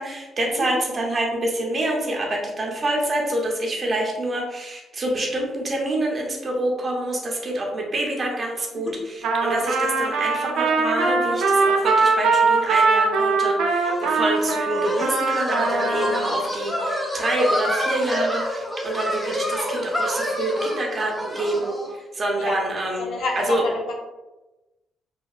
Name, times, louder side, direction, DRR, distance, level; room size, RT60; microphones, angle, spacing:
voice 1, 0.0-23.1 23.4-23.6, right 1 dB, 35° right, -1 dB, 0.7 m, -27 dB
Trumpet, 9.2-16.3, right 4 dB, 85° right, 0.4 m, -21 dB
sound 1, 13.8-21.9, equal, 10° left, 0.5 m, -27 dB
voice 2, 23.0-23.9, left 2 dB, 75° left, 0 dB, 0.6 m, -29 dB
2.8 x 2.2 x 2.3 m, 1.1 s
cardioid pair, 90°, 0 cm